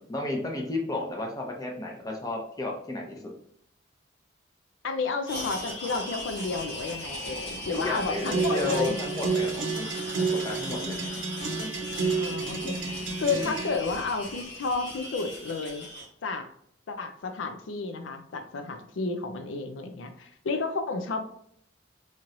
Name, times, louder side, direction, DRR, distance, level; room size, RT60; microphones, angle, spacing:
voice 1, 0.1-3.3 7.8-9.7 10.2-11.0, left 2 dB, 20° left, 0 dB, 0.7 m, -33 dB
voice 2, 4.8-9.0 12.2-12.9 13.2-15.9 16.2-16.5 16.9-21.2, left 4 dB, 90° left, 7 dB, 0.5 m, -31 dB
sound 1, 5.3-16.1, left 1 dB, 60° left, 1.5 m, -38 dB
sound 2, 8.2-13.8, right 4 dB, 75° right, 0.6 m, -30 dB
4.2 x 3.0 x 2.5 m, 0.67 s
head